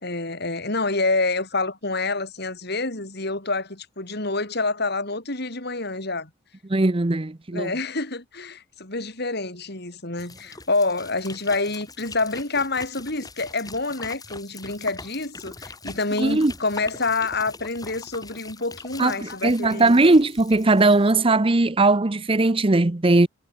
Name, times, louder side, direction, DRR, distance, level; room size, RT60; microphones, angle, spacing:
voice 1, 0.0-6.3 7.5-20.0, left 3 dB, 55° left, 5.6 m, -27 dB
voice 2, 6.7-7.7 16.2-16.5 19.0-23.3, right 2 dB, 30° right, 0.8 m, -19 dB
sound 1, 10.2-21.1, left 3 dB, 20° left, 4.3 m, -42 dB
head